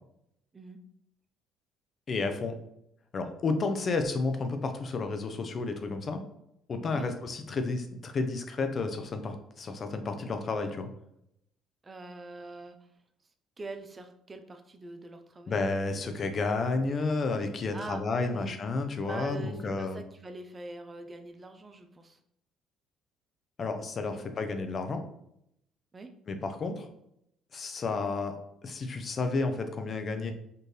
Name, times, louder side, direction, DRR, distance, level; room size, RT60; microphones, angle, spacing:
voice 1, 2.1-2.6 3.1-6.2 6.7-10.9 15.5-20.0 23.6-25.0 26.3-26.9 27.5-28.4 28.6-30.3, left 3 dB, 45° left, 7 dB, 0.6 m, -31 dB
voice 2, 11.8-12.8 13.6-15.6 17.7-18.5 19.0-22.2 24.1-24.3 25.9-26.1, right 3 dB, 30° right, 7 dB, 0.5 m, -43 dB
4.4 x 2.5 x 3.2 m, 0.76 s
supercardioid pair, 70°, 0 cm